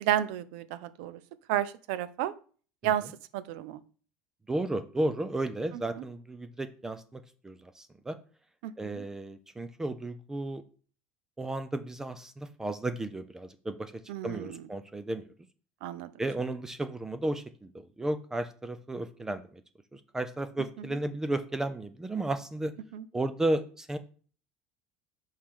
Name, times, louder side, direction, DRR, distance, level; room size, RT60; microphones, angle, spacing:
voice 1, 0.0-1.2 1.5-2.3 2.8-3.8 6.0-6.1 8.6-9.0 14.1-14.6 15.8-16.1 22.9-23.0, right 11 dB, 70° right, 16 dB, 0.5 m, -32 dB
voice 2, 4.5-8.2 8.8-10.6 11.4-15.2 16.2-19.4 19.9-22.7 23.1-24.0, right 2 dB, 10° right, 11 dB, 0.3 m, -33 dB
5.6 x 4.9 x 3.6 m, 0.41 s
cardioid pair, 170°, 6 cm